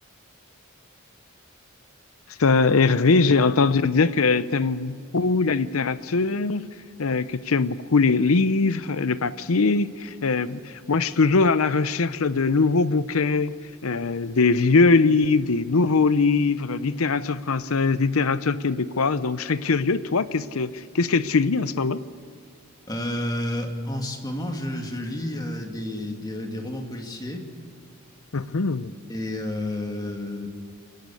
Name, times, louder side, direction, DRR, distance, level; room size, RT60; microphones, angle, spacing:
voice 1, 2.4-6.6 7.0-13.5 13.8-22.0 28.3-28.9, left 4 dB, 80° left, 14 dB, 0.7 m, -21 dB
voice 2, 22.9-27.5 29.1-30.5, left 1 dB, 20° left, 2 dB, 2.3 m, -30 dB
29.0 x 11.5 x 8.4 m, 2.2 s
head